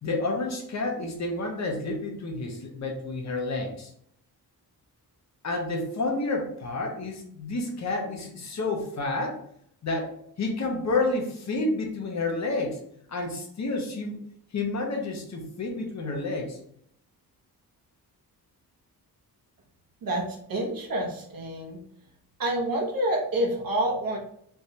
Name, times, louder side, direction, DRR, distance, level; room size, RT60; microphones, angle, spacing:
voice 1, 0.0-3.9 5.4-9.4 9.8-10.1 10.4-12.8 13.1-14.2 14.5-16.6, left 2 dB, 45° left, 1 dB, 0.8 m, -30 dB
voice 2, 20.0-21.8 22.4-24.2, right 1 dB, 60° right, -1 dB, 1.1 m, -28 dB
3.4 x 3.1 x 2.8 m, 0.69 s
wide cardioid pair, 145°, 38 cm